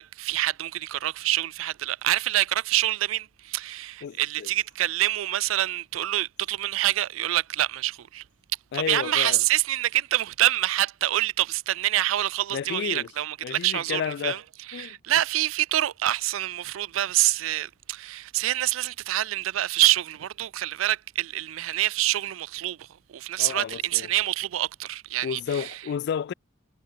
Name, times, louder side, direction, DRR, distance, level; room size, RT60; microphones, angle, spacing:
voice 1, 0.0-8.2 8.7-14.4 14.7-22.8 23.1-25.7, right 14 dB, 80° right, 0.4 m, -26 dB
voice 2, 4.0-4.5 8.7-9.4 12.5-13.1 13.4-14.4 14.7-15.0 23.4-24.1 25.2-26.3, left 8 dB, 60° left, 0.3 m, -31 dB
head